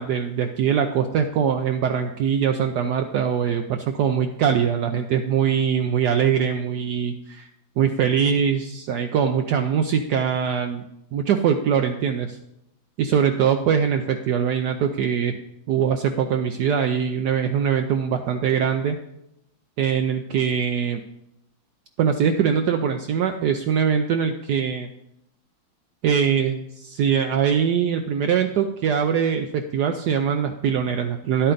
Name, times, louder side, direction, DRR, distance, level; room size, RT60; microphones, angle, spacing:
voice 1, 0.0-7.5 7.8-10.8 11.1-12.4 13.0-15.3 15.7-19.0 19.8-21.0 22.0-24.9 26.0-31.5, right 7 dB, 70° right, 5 dB, 1.1 m, -22 dB
11.0 x 8.5 x 3.9 m, 0.81 s
omnidirectional pair, 2.1 m